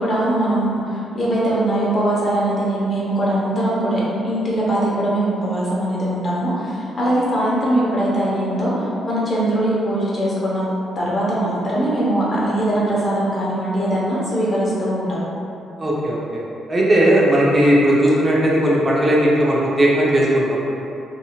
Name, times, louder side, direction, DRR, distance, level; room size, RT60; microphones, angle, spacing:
voice 1, 0.0-8.7 9.0-10.7 10.9-15.3, right 1 dB, 35° left, -7 dB, 0.9 m, -21 dB
voice 2, 15.8-16.2 16.7-20.7, right 1 dB, 20° right, -6 dB, 0.7 m, -16 dB
3.6 x 2.6 x 2.3 m, 2.7 s
cardioid pair, 90°, 0 cm